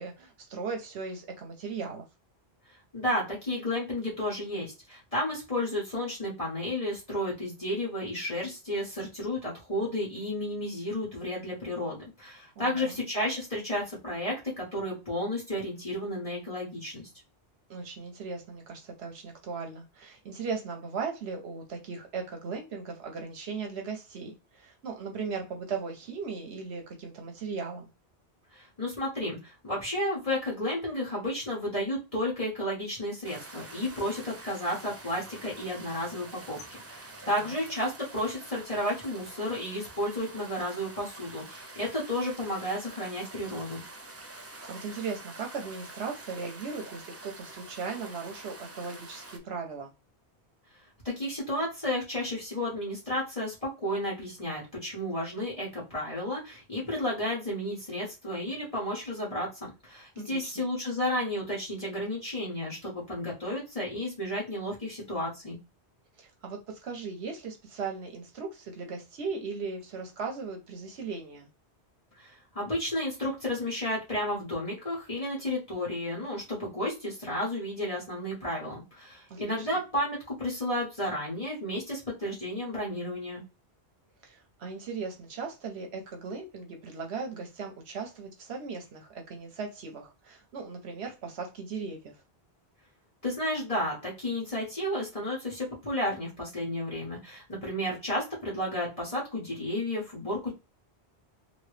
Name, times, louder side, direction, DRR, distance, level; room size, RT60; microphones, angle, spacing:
voice 1, 0.0-2.0 12.6-13.0 17.7-27.9 37.2-37.6 44.4-49.9 60.2-60.6 66.2-71.5 79.3-79.7 84.2-92.2, right 5 dB, 75° right, 1.0 m, -38 dB
voice 2, 2.9-17.1 28.5-43.8 51.0-65.6 72.2-83.4 93.2-100.5, left 1 dB, 35° left, 1.2 m, -32 dB
sound 1, 33.2-49.4, right 2 dB, 25° right, 0.3 m, -46 dB
3.0 x 2.7 x 3.1 m
omnidirectional pair, 1.1 m